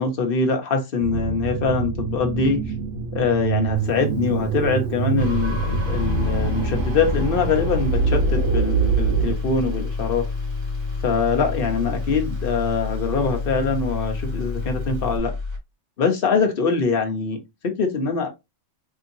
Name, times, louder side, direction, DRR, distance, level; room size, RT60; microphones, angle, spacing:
voice 1, 0.0-2.6 3.1-10.3 11.0-15.3 16.0-18.3, left 4 dB, 45° left, 1.0 m, -23 dB
sound 1, 1.0-9.3, right 6 dB, 70° right, 1.2 m, -25 dB
sound 2, 3.8-15.2, left 4 dB, 45° right, 0.9 m, -35 dB
sound 3, 5.2-15.6, left 3 dB, 20° right, 1.1 m, -29 dB
4.3 x 2.8 x 2.6 m
omnidirectional pair, 1.4 m